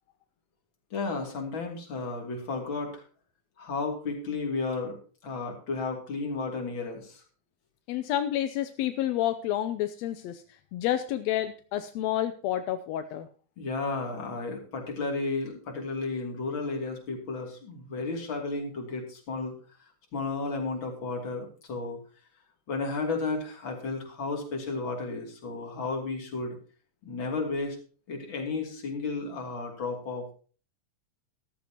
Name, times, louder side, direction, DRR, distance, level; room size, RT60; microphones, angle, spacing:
voice 1, 0.9-3.0 3.6-7.2 13.6-19.5 20.1-22.0 22.7-26.6 27.0-27.8 28.1-30.3, left 3 dB, 40° left, 1 dB, 3.2 m, -33 dB
voice 2, 7.9-10.4 10.7-13.3, left 12 dB, 75° left, 9 dB, 1.6 m, -29 dB
14.0 x 13.5 x 2.9 m, 0.39 s
omnidirectional pair, 3.6 m